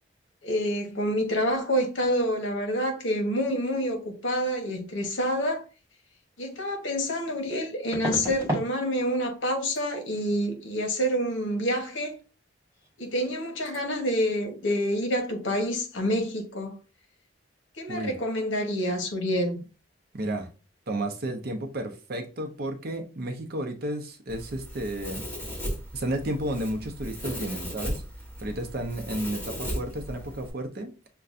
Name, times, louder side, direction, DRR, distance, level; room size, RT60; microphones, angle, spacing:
voice 1, 0.4-5.6 6.4-12.1 13.0-16.8 17.8-19.6, equal, 65° left, 1.0 m, -27 dB
sound 1, 6.4-6.5 7.9-8.7 9.0-9.4 9.6-9.8 12.8-12.9 13.1-13.4 13.6-13.8, equal, 15° right, 1.4 m, -32 dB
voice 2, 20.1-20.5 20.9-25.3 25.9-28.0 28.4-30.9, right 1 dB, 50° right, 0.7 m, -32 dB
Domestic sounds home sounds, 24.3-30.5, equal, 10° left, 1.9 m, -36 dB
6.6 x 2.3 x 2.5 m
head